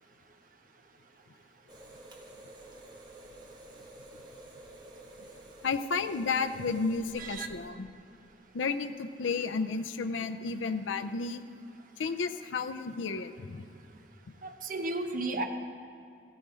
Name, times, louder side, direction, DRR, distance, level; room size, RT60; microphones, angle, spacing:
sound 1, 1.7-7.7, right 1 dB, 25° right, 1.3 m, -51 dB
voice 1, 5.6-7.9 8.5-11.4 12.0-13.6, left 4 dB, 85° left, 8 dB, 0.5 m, -32 dB
voice 2, 7.2-7.5 14.4-15.4, right 2 dB, 45° right, 5 dB, 0.9 m, -33 dB
14.5 x 9.4 x 5.0 m, 2.5 s
head